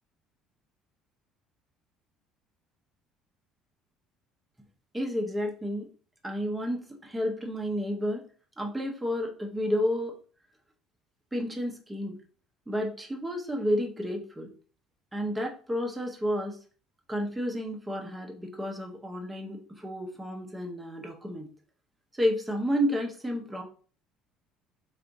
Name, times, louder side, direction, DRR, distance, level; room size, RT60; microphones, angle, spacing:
voice 1, 4.9-5.9 6.2-8.2 8.6-10.1 11.3-12.1 12.7-14.5 15.1-16.6 17.1-21.5 22.1-23.6, equal, 10° right, 1 dB, 0.7 m, -31 dB
3.4 x 2.5 x 3.9 m, 0.41 s
cardioid pair, 140°, 0 cm